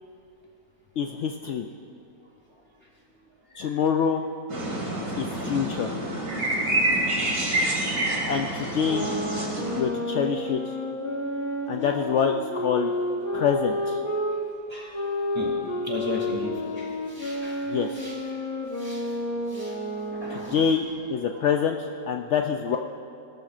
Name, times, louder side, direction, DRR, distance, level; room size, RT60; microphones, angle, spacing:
voice 1, 1.0-1.7 3.6-4.2 5.2-5.9 8.2-9.1 9.7-10.6 11.7-12.9 13.3-14.0 17.7-17.9 20.3-22.8, left 7 dB, 80° left, 4 dB, 0.6 m, -26 dB
sound 1, 4.5-9.8, right 1 dB, 85° right, 2.8 m, -27 dB
voice 2, 6.6-7.0 14.7-15.5 15.8-18.2 18.8-19.1 19.5-20.6, left 1 dB, 15° right, -3 dB, 2.5 m, -37 dB
sound 2, 8.7-14.3 14.9-20.5, left 1 dB, 55° left, 1.7 m, -30 dB
19.0 x 13.0 x 2.5 m, 2.6 s
omnidirectional pair, 1.8 m